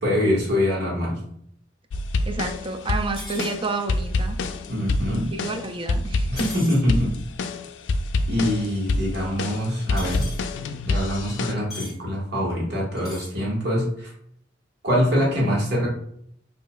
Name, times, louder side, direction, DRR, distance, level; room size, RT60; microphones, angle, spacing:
voice 1, 0.0-1.2 4.7-5.3 6.3-7.1 8.3-10.2 10.8-14.1 14.8-15.9, equal, 65° right, -4 dB, 1.5 m, -24 dB
sound 1, 1.9-11.5, left 2 dB, 80° left, 0.3 m, -27 dB
voice 2, 2.3-4.4 5.3-6.6, right 3 dB, 30° right, 7 dB, 0.4 m, -29 dB
sound 2, 3.2-3.5 6.4-6.8 10.0-10.4 11.7-12.0 13.0-13.3, left 2 dB, ahead, 1.5 m, -38 dB
5.0 x 2.7 x 2.3 m, 0.68 s
head